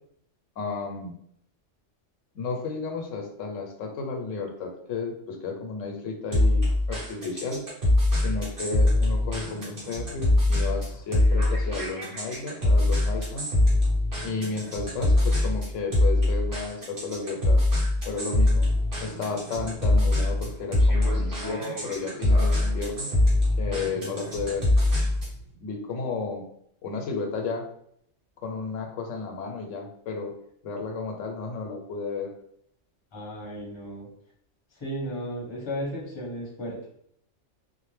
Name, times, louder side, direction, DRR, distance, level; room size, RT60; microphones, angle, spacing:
voice 1, 0.6-1.1 2.3-7.7 8.1-13.5 14.2-17.6 18.1-18.7 19.0-23.1 23.6-24.7 25.6-26.4 26.8-27.7 28.4-30.3 30.6-32.3, left 4 dB, 90° left, 3 dB, 0.9 m, -33 dB
sound 1, 6.3-25.4, left 1 dB, 50° right, 1.1 m, -23 dB
voice 2, 33.1-34.1 34.7-36.9, equal, 25° left, -4 dB, 0.7 m, -34 dB
2.5 x 2.1 x 3.1 m, 0.69 s
omnidirectional pair, 1.3 m